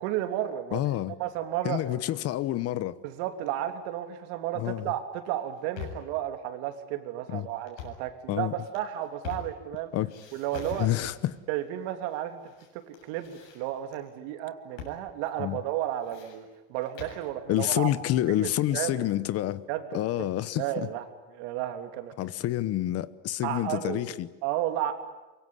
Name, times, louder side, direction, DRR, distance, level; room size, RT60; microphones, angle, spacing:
voice 1, 0.0-0.8 1.2-1.8 3.0-9.9 10.3-10.9 11.5-12.4 12.7-17.9 18.3-19.0 19.7-20.3 20.6-21.0 21.3-22.1 23.4-24.1 24.4-24.9, right 12 dB, 75° right, 3.2 m, -33 dB
voice 2, 0.7-1.2 1.6-3.0 4.5-4.9 7.3-7.5 8.3-8.5 9.9-10.1 10.8-11.4 15.4-15.6 17.5-19.6 19.9-20.9 22.2-24.3, left 14 dB, 45° left, 1.0 m, -28 dB
sound 1, 5.4-6.2 7.6-8.1 8.6-9.8 10.1-11.4 12.1-12.7 12.9-14.0 14.8-15.0 15.3-15.4 15.8-17.3, left 7 dB, 80° left, 7.7 m, -43 dB
24.5 x 23.0 x 9.8 m
cardioid pair, 140°, 34 cm